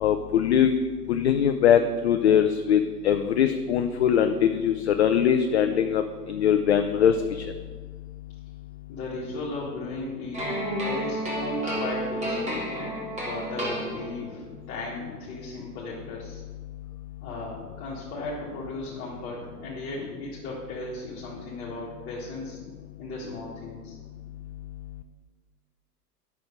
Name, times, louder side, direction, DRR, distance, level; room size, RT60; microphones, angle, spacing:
voice 1, 0.0-0.7 1.1-6.0 6.3-7.1, left 9 dB, 45° left, 7 dB, 0.5 m, -21 dB
voice 2, 8.9-10.4 10.8-12.6 13.2-16.4 17.2-22.6 23.0-24.0, left 2 dB, 30° left, -6 dB, 1.8 m, -36 dB
sound 1, 10.3-14.4, equal, 15° right, 1.8 m, -31 dB
10.5 x 6.1 x 5.2 m, 1.5 s
figure-of-eight pair, 105°, 50 cm